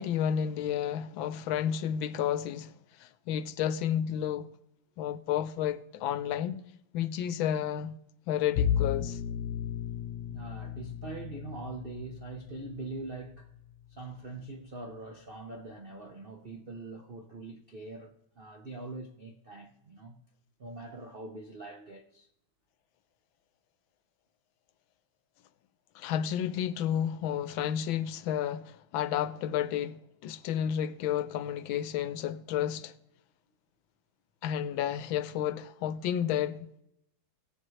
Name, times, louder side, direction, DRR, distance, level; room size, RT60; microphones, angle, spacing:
voice 1, 0.0-2.7 3.0-4.5 5.0-6.6 6.9-8.0 8.3-9.2 25.9-32.9 34.4-36.8, left 9 dB, 80° left, 1.4 m, -31 dB
Bowed string instrument, 8.5-13.6, left 9 dB, 65° left, 1.2 m, -34 dB
voice 2, 10.3-13.5 13.9-20.2 20.6-22.3, right 3 dB, 60° right, 0.6 m, -43 dB
18.0 x 7.4 x 3.1 m
omnidirectional pair, 2.2 m